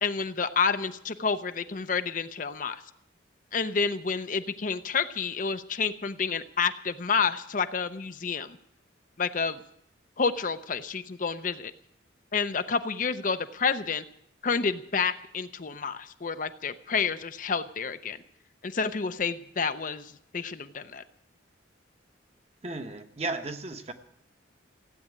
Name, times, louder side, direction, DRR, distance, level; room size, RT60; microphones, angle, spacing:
voice 1, 0.0-2.8 3.5-8.6 9.2-9.6 10.2-11.7 12.3-14.0 14.4-18.2 18.6-21.0, left 5 dB, 45° left, 10 dB, 0.6 m, -29 dB
voice 2, 22.6-23.9, right 2 dB, 35° right, 7 dB, 1.0 m, -34 dB
15.5 x 8.6 x 9.5 m, 0.71 s
head